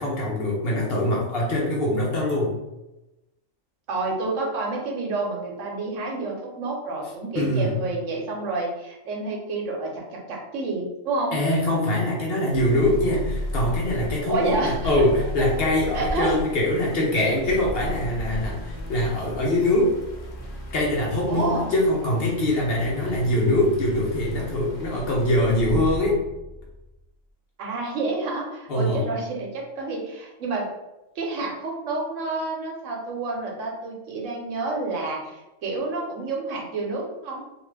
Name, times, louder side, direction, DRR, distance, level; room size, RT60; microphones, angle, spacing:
voice 1, 0.0-2.5 7.4-7.8 11.3-19.9 20.7-26.2 28.7-29.1, left 1 dB, 60° left, -3 dB, 0.7 m, -23 dB
voice 2, 3.9-11.3 14.3-14.9 15.9-16.4 21.3-21.7 27.6-30.7 31.2-37.4, right 3 dB, 75° right, -1 dB, 1.0 m, -29 dB
sound 1, 12.5-26.0, equal, 90° left, 0.4 m, -38 dB
sound 2, 12.5-27.1, equal, 10° left, 0.9 m, -37 dB
2.5 x 2.3 x 3.2 m, 0.98 s
omnidirectional pair, 1.4 m